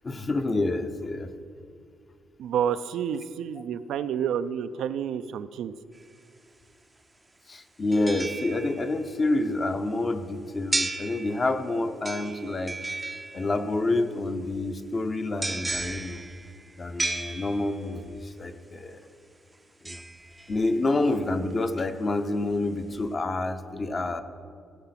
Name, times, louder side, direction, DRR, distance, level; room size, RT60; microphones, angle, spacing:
voice 1, 0.0-1.3 7.5-12.8 13.3-16.2 16.8-19.1 19.8-20.0 20.5-24.2, left 2 dB, 25° left, 8 dB, 0.7 m, -28 dB
voice 2, 2.4-5.7, right 8 dB, 80° right, 11 dB, 0.4 m, -29 dB
sound 1, 5.9-6.0 7.9-9.1 10.7-11.7 12.0-13.8 15.4-17.9 19.8-21.0 21.5-21.6, right 2 dB, 15° right, 0.5 m, -34 dB
16.5 x 5.9 x 5.8 m, 2.4 s
cardioid pair, 150°, 0 cm